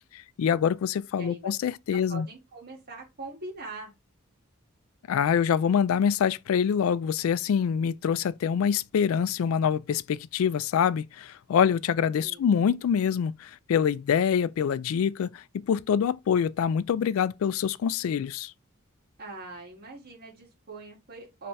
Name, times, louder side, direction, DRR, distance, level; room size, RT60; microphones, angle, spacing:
voice 1, 0.1-2.3 5.1-18.5, left 7 dB, 70° left, 0.3 m, -25 dB
voice 2, 1.1-1.5 2.1-3.9 12.2-12.5 19.2-21.5, right 2 dB, 45° right, 1.8 m, -42 dB
4.1 x 3.3 x 3.2 m
head